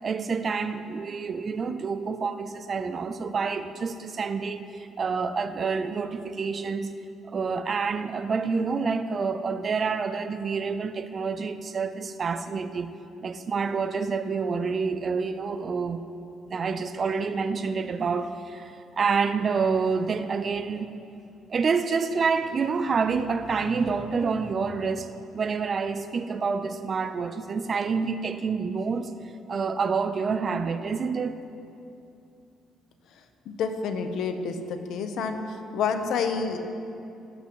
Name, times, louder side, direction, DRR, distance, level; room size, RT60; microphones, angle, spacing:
voice 1, 0.0-6.9 7.3-12.9 13.2-16.0 16.5-20.9 21.5-29.1 29.5-31.4, right 5 dB, 45° right, 11 dB, 0.6 m, -28 dB
voice 2, 33.5-35.4 35.7-36.6, left 5 dB, 70° left, 7 dB, 0.9 m, -28 dB
20.0 x 8.1 x 3.1 m, 2.6 s
supercardioid pair, 70°, 0 cm